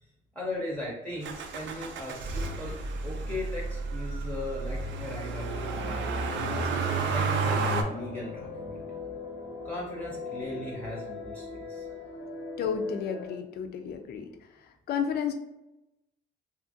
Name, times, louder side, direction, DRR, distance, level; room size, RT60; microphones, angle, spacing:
voice 1, 0.3-2.8 3.0-6.7 7.1-8.8 9.6-11.9, left 1 dB, 10° left, -4 dB, 0.6 m, -38 dB
Motor vehicle (road), 1.2-7.8, right 3 dB, 70° right, 0.4 m, -31 dB
sound 1, 5.3-13.3, left 3 dB, 85° left, 0.7 m, -40 dB
voice 2, 12.6-14.3 14.6-15.3, left 7 dB, 55° left, 5 dB, 0.4 m, -32 dB
2.7 x 2.4 x 2.6 m, 0.94 s
cardioid pair, 90°, 20 cm